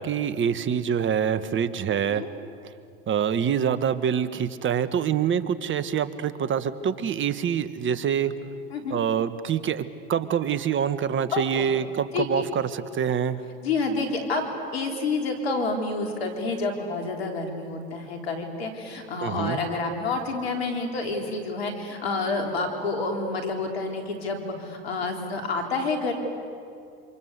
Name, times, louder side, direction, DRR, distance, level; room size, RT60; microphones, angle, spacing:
voice 1, 0.0-2.2 3.1-8.3 8.9-13.4 19.2-19.6, right 8 dB, 40° right, 12 dB, 1.6 m, -25 dB
voice 2, 11.3-11.7 12.1-12.4 13.6-26.1, left 3 dB, 90° left, 4 dB, 4.0 m, -29 dB
27.5 x 26.0 x 8.3 m, 2.4 s
hypercardioid pair, 80°, 30 cm